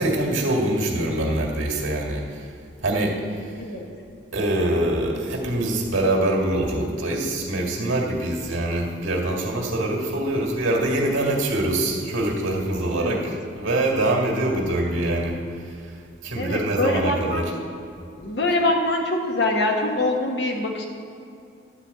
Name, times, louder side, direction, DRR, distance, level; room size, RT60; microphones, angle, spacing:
voice 1, 0.0-2.5 2.8-3.5 4.3-15.8 16.2-17.5, right 1 dB, 90° right, -1 dB, 1.8 m, -24 dB
voice 2, 12.9-13.2 16.4-17.5 18.2-20.8, left 1 dB, 60° left, 1 dB, 1.3 m, -24 dB
11.5 x 4.5 x 8.2 m, 2.5 s
head